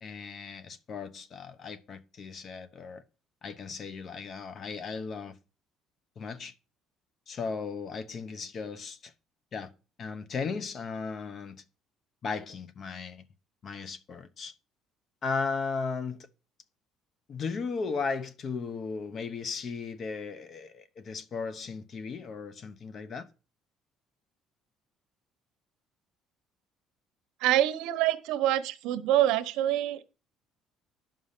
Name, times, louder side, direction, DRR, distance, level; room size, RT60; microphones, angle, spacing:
voice 1, 0.0-3.0 3.4-5.4 6.2-6.5 7.3-9.1 9.5-9.7 10.0-11.6 12.2-13.2 13.6-14.5 15.2-16.3 17.3-23.3, left 5 dB, 35° left, 0.9 m, -36 dB
voice 2, 27.4-30.1, right 12 dB, 80° right, 1.0 m, -26 dB
11.0 x 5.7 x 6.7 m
cardioid pair, 160°, 0 cm